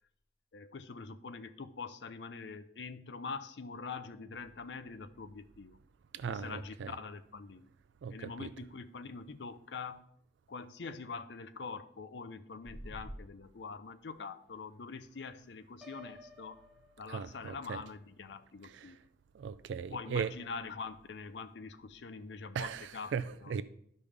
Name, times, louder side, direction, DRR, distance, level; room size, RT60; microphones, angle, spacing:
voice 1, 0.5-5.8 6.3-7.7 8.1-10.1 10.5-16.6 17.0-19.0 19.9-23.1 23.4-23.6, left 4 dB, 70° left, 0.6 m, -44 dB
voice 2, 6.1-6.9 8.0-8.5 17.1-17.8 18.6-18.9 19.3-20.3 22.5-23.6, right 6 dB, 85° right, 0.3 m, -38 dB
sound 1, 12.6-13.2, equal, 50° left, 2.5 m, -44 dB
Piano, 15.8-17.7, left 3 dB, ahead, 1.1 m, -55 dB
12.0 x 5.3 x 3.3 m
head